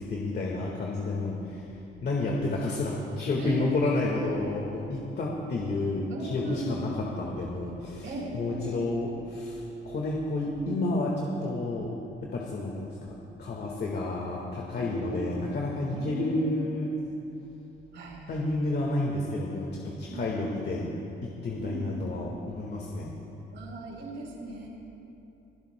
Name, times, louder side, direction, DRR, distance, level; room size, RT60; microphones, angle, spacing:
voice 1, 0.0-1.7 2.0-8.1 8.3-11.9 12.2-16.9 18.3-20.9 21.4-23.1, left 2 dB, 55° left, -2 dB, 1.7 m, -30 dB
voice 2, 3.4-4.0 6.1-6.9 8.0-8.8 10.5-10.7 14.8-15.5 15.8-16.7 17.9-18.6 20.1-20.4 21.6-22.1 23.5-24.7, right 1 dB, 70° right, -1 dB, 3.7 m, -37 dB
25.5 x 16.0 x 2.2 m, 2.9 s
cardioid pair, 90°, 20 cm